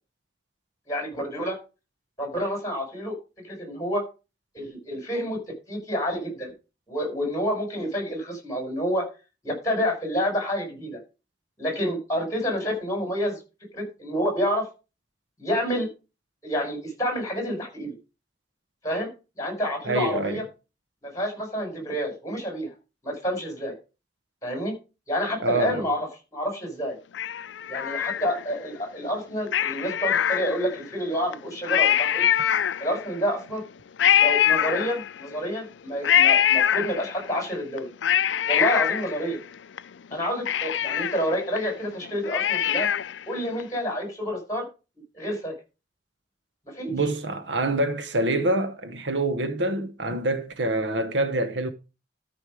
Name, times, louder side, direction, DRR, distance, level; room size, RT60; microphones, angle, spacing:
voice 1, 0.9-1.6 2.2-3.2 3.4-4.0 4.5-5.4 5.7-6.5 6.9-9.1 9.4-11.0 11.6-13.4 13.7-14.7 15.4-15.9 16.4-17.9 18.8-19.1 19.4-20.4 21.0-22.7 23.0-23.7 24.4-24.7 25.1-27.0 27.7-32.3 32.8-33.6 34.2-37.9 38.5-39.4 40.1-42.9 43.3-44.7 45.1-45.5 46.7-46.9, equal, 20° left, 5.4 m, -28 dB
voice 2, 19.8-20.4 25.4-25.9 46.9-51.7, right 2 dB, 70° right, 1.0 m, -26 dB
Cat, 27.1-28.6 29.5-30.9 31.3-31.4 31.6-33.1 34.0-35.3 36.0-37.3 37.8-39.8 40.1-40.2 40.5-43.2 43.6-43.7, left 10 dB, 75° left, 0.4 m, -23 dB
13.0 x 5.3 x 4.8 m
head